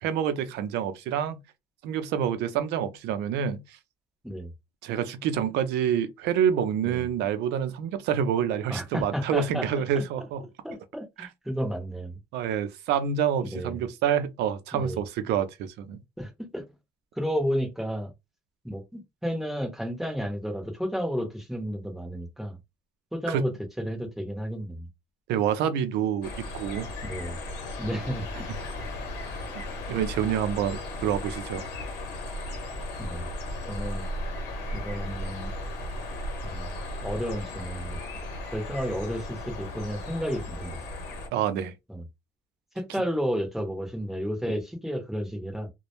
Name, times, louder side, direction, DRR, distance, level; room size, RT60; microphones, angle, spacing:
voice 1, 0.0-1.4 1.8-3.6 4.8-10.4 11.2-11.3 12.3-16.0 23.3-23.4 25.3-26.9 29.9-31.7 41.3-41.7, right 8 dB, 85° right, 0.5 m, -27 dB
voice 2, 8.7-9.7 9.9-10.0 10.6-12.2 13.4-13.9 14.7-15.0 16.2-16.7 17.2-18.1 18.6-22.6 23.1-23.5 23.8-24.9 27.0-27.4 27.8-28.3 33.0-33.3 33.7-34.1 34.7-35.5 36.4-36.7 37.0-38.0 38.5-40.8 41.9-42.1 42.7-45.7, equal, ahead, 0.8 m, -32 dB
sound 1, 26.2-41.3, left 1 dB, 85° left, 0.8 m, -36 dB
2.1 x 2.0 x 2.9 m
cardioid pair, 110°, 17 cm